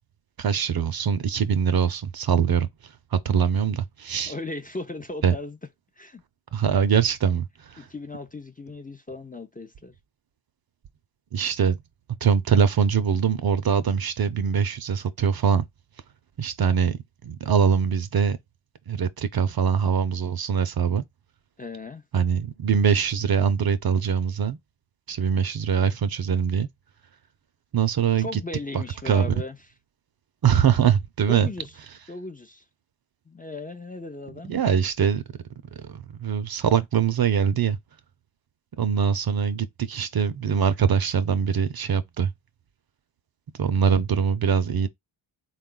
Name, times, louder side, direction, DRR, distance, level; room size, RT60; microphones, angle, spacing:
voice 1, 0.4-2.7 3.1-4.3 5.2-5.4 6.5-7.9 11.3-11.8 12.2-15.6 16.4-17.0 17.2-18.4 18.9-21.0 22.1-24.6 25.1-26.7 27.7-28.4 28.7-29.3 30.4-31.5 34.4-35.2 35.9-37.8 38.8-42.3 43.6-44.9, right 7 dB, 50° right, 0.7 m, -23 dB
voice 2, 4.3-5.6 6.0-6.2 7.8-9.9 21.6-22.0 28.2-29.6 31.3-31.7 32.1-32.6 33.3-34.5, left 2 dB, 15° left, 0.5 m, -37 dB
3.8 x 2.4 x 3.7 m
cardioid pair, 70°, 49 cm